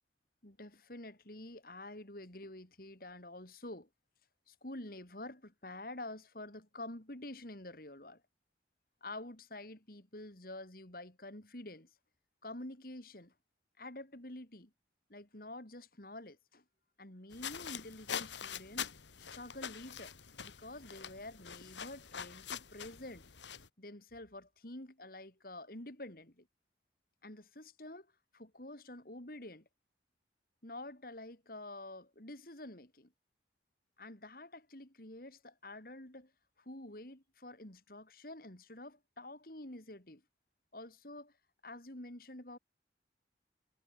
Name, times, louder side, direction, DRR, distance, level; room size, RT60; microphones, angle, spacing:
voice 1, 0.4-3.9 4.5-8.2 9.0-11.9 12.4-13.3 13.8-14.7 15.1-16.6 17.0-18.9 19.3-20.1 20.4-23.2 23.8-26.5 27.2-28.1 28.3-29.7 30.6-33.1 34.0-36.3 36.6-40.2 40.7-41.3 41.6-42.6, left 1 dB, 55° left, 3.5 m, -48 dB
sound 1, 17.3-23.7, left 8 dB, 85° left, 1.8 m, -44 dB
head